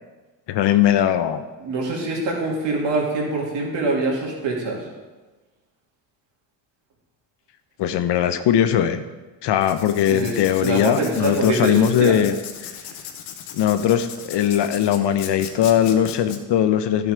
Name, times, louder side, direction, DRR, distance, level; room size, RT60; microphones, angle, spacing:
voice 1, 0.5-1.4 7.8-9.0 9.4-12.3 13.5-17.1, left 10 dB, 60° left, 11 dB, 0.8 m, -19 dB
voice 2, 1.6-4.8 10.1-12.2, right 2 dB, 60° right, -1 dB, 2.8 m, -24 dB
Writing, 9.6-16.4, left 9 dB, 75° left, 1.1 m, -38 dB
11.0 x 6.0 x 5.1 m, 1.2 s
supercardioid pair, 85°, 48 cm